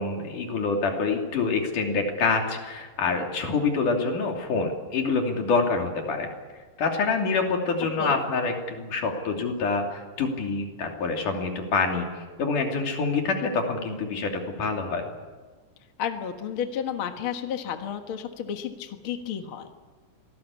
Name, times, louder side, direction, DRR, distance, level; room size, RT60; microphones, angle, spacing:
voice 1, 0.0-6.3 6.8-12.1 12.4-15.0, left 4 dB, 80° left, 2 dB, 4.4 m, -26 dB
voice 2, 16.0-19.7, left 8 dB, 50° left, 5 dB, 2.1 m, -32 dB
25.5 x 18.5 x 8.5 m, 1.4 s
omnidirectional pair, 3.6 m